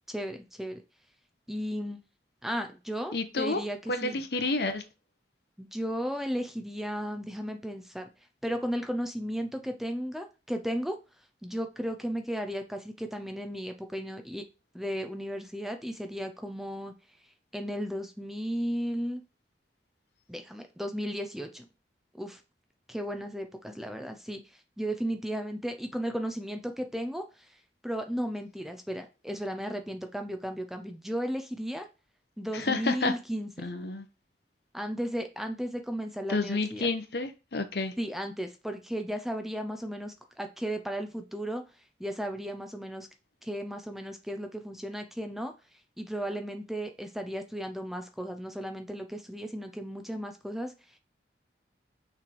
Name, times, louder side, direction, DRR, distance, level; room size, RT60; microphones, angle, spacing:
voice 1, 0.1-0.8 1.5-2.0 2.4-4.2 5.6-8.1 8.4-11.0 11.4-14.4 14.7-16.9 17.5-19.2 20.3-21.7 22.1-22.4 22.9-24.4 24.8-27.6 27.8-31.9 32.4-33.7 34.7-36.9 38.0-41.6 42.0-43.1 43.4-45.5 46.0-50.7, equal, ahead, 0.6 m, -35 dB
voice 2, 3.1-3.6 3.9-4.8 32.5-33.1 33.6-34.1 36.3-37.9, left 3 dB, 65° left, 0.9 m, -30 dB
6.2 x 3.4 x 4.5 m
head